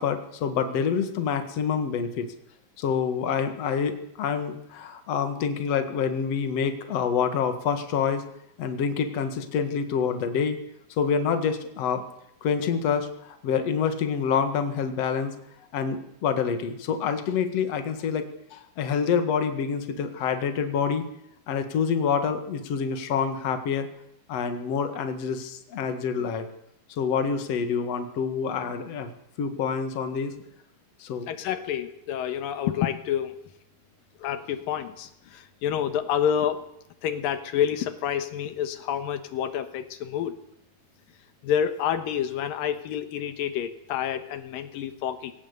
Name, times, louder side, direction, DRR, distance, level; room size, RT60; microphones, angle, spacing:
voice 1, 0.0-2.3 2.8-8.2 8.6-10.6 11.0-12.1 12.4-15.3 15.7-21.1 21.5-23.9 24.3-26.5 27.0-29.1 29.4-30.3 31.0-31.3, left 6 dB, 50° left, 7 dB, 2.6 m, -27 dB
voice 2, 31.3-33.4 34.2-36.6 37.0-40.3 41.4-45.3, left 9 dB, 85° left, 9 dB, 3.0 m, -28 dB
20.5 x 18.0 x 8.2 m, 0.78 s
omnidirectional pair, 4.0 m